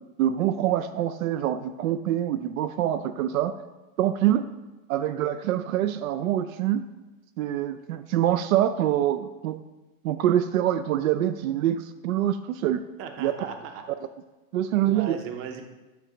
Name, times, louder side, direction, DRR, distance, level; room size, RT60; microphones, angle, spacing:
voice 1, 0.2-3.5 4.0-4.5 4.9-6.8 7.4-9.6 10.0-12.8 13.2-13.3 14.5-15.2, right 11 dB, 80° right, 11 dB, 0.5 m, -25 dB
voice 2, 13.0-13.8 14.8-15.6, right 6 dB, 35° right, 5 dB, 0.8 m, -37 dB
9.4 x 3.3 x 4.9 m, 1.1 s
supercardioid pair, 140°, 41 cm